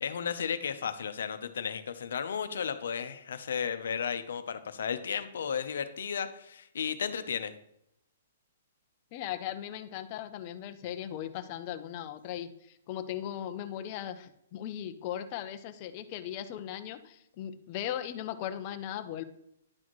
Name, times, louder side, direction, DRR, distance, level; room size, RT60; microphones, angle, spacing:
voice 1, 0.0-7.5, left 7 dB, 75° left, 10 dB, 0.7 m, -34 dB
voice 2, 9.1-19.2, left 11 dB, 30° left, 9 dB, 0.5 m, -38 dB
10.5 x 4.2 x 3.1 m, 0.75 s
hypercardioid pair, 165°, 0 cm